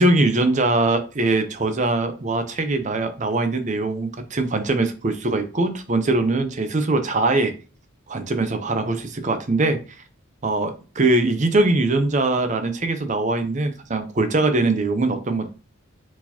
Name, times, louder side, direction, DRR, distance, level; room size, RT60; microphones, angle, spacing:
voice 1, 0.0-7.5 8.1-9.8 10.4-15.5, right 2 dB, 35° right, 8 dB, 0.6 m, -22 dB
4.5 x 4.1 x 2.8 m, 0.33 s
head